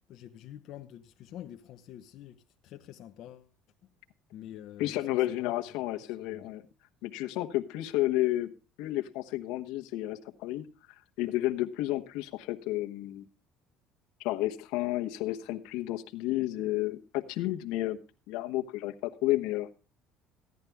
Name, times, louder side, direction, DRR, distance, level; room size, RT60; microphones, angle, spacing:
voice 1, 0.1-3.5 4.3-5.6 6.0-6.5, left 11 dB, 60° left, 0.8 m, -47 dB
voice 2, 4.8-6.6 7.0-8.5 8.8-10.7 11.2-13.2 14.2-18.0 18.3-19.7, left 16 dB, 85° left, 1.1 m, -31 dB
16.0 x 10.5 x 3.5 m
cardioid pair, 125°, 0 cm